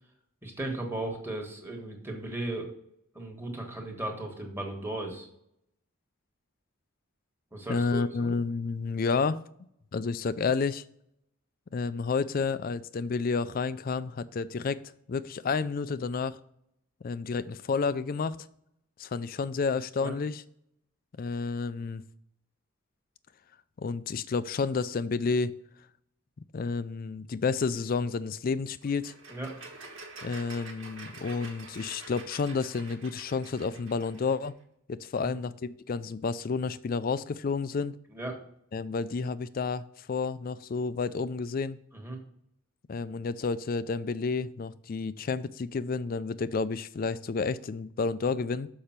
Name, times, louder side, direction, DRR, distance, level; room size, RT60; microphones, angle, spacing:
voice 1, 0.4-2.7 3.1-5.3 7.5-8.3 20.0-20.1 29.3-29.5 35.1-35.3 38.1-38.4 41.9-42.2, right 2 dB, 10° right, 1.4 m, -36 dB
voice 2, 7.7-9.4 9.9-10.8 11.7-14.8 15.1-16.4 17.0-18.4 19.0-20.4 21.2-22.0 23.8-25.6 26.5-29.1 30.2-34.6 34.9-37.9 38.7-41.8 42.9-48.7, left 4 dB, 40° left, 0.4 m, -30 dB
sound 1, 28.8-34.5, right 3 dB, 65° right, 1.4 m, -47 dB
6.7 x 5.4 x 5.8 m
head